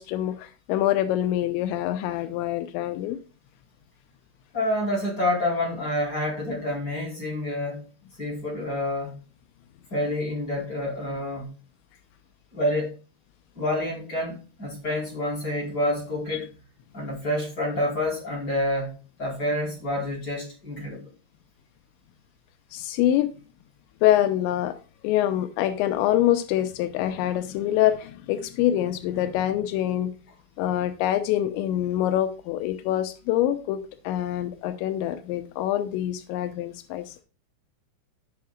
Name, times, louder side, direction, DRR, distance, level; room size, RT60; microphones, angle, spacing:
voice 1, 0.0-3.2 22.7-23.3 24.0-24.8 25.0-30.1 30.6-37.1, left 12 dB, 90° left, 3.0 m, -25 dB
voice 2, 4.5-7.8 8.2-9.1 9.9-11.5 12.5-12.9 13.5-16.5 16.9-18.9 19.2-21.1, left 1 dB, 20° left, 4.8 m, -28 dB
15.0 x 5.7 x 2.4 m
omnidirectional pair, 5.1 m